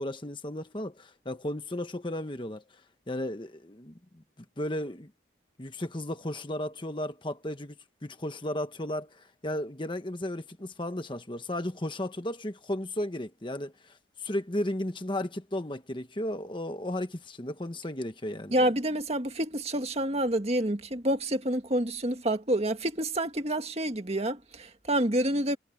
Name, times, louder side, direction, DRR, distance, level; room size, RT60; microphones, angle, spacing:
voice 1, 0.0-2.6 3.1-3.9 4.6-5.1 5.6-7.8 8.0-18.5, left 1 dB, 25° left, 1.3 m, -34 dB
voice 2, 18.5-25.6, right 1 dB, 35° right, 1.9 m, -28 dB
head